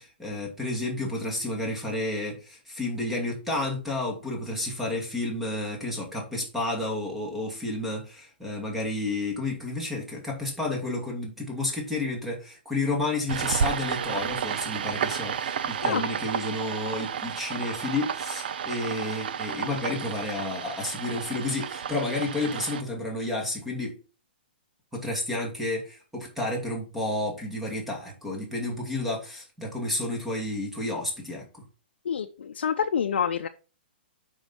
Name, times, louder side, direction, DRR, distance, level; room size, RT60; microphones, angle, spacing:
voice 1, 0.0-23.9 24.9-31.6, left 2 dB, 5° right, 0 dB, 2.3 m, -31 dB
sound 1, 13.3-22.8, right 7 dB, 60° right, 0.7 m, -32 dB
voice 2, 32.0-33.5, left 7 dB, 80° left, 5 dB, 0.7 m, -27 dB
7.0 x 5.5 x 4.4 m, 0.35 s
hypercardioid pair, 155°, 6 cm